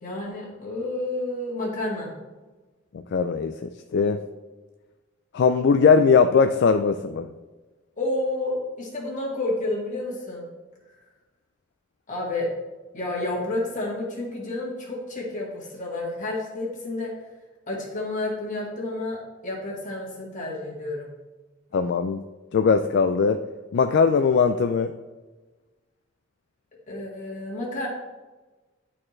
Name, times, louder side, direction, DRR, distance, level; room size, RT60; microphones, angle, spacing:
voice 1, 0.0-2.1 8.0-10.5 12.1-12.5 12.9-17.1 17.7-19.2 19.4-21.1 26.9-27.9, left 2 dB, 40° left, -3 dB, 1.9 m, -30 dB
voice 2, 2.9-3.5 3.9-4.2 5.3-7.3 21.7-22.2 22.5-23.4 23.7-24.9, left 5 dB, 60° left, 8 dB, 0.3 m, -20 dB
11.0 x 4.3 x 3.2 m, 1.2 s
head